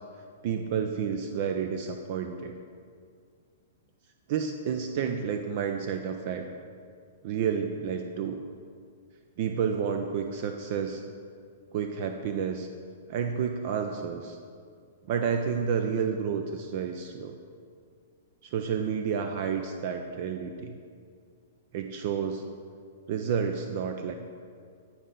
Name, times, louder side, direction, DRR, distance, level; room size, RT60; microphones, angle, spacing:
voice 1, 0.4-2.5 4.3-6.4 7.2-8.5 9.4-11.0 11.7-12.7 13.1-14.4 15.1-17.4 18.4-20.8 21.7-22.5 23.1-24.1, right 7 dB, 50° right, 6 dB, 0.4 m, -30 dB
10.0 x 4.2 x 3.8 m, 2.2 s
figure-of-eight pair, 110°, 0 cm